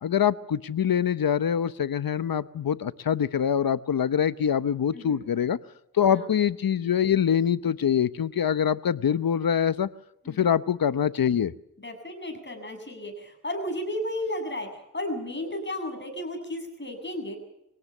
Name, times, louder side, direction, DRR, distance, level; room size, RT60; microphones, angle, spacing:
voice 1, 0.0-5.6 6.0-9.9 10.4-11.5, left 8 dB, 75° left, 15 dB, 0.9 m, -24 dB
voice 2, 4.9-5.3 6.1-6.3 10.2-10.5 11.8-14.7 14.9-17.4, left 1 dB, 30° left, 5 dB, 7.3 m, -33 dB
23.5 x 18.0 x 7.2 m, 0.85 s
wide cardioid pair, 75°, 35 cm